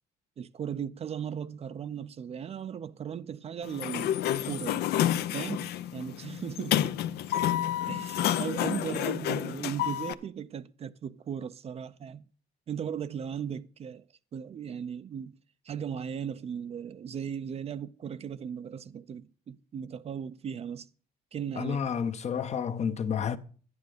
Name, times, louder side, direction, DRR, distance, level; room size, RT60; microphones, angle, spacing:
voice 1, 0.4-4.9 5.3-6.9 7.9-12.3 12.7-14.1 14.3-15.4 15.6-20.9 21.3-21.8, right 8 dB, 35° right, 0.5 m, -37 dB
Sliding door, 3.6-10.1, left 11 dB, 75° left, 0.6 m, -29 dB
voice 2, 21.6-23.4, left 7 dB, 40° left, 0.8 m, -30 dB
10.5 x 9.6 x 5.0 m
cardioid pair, 110°, 17 cm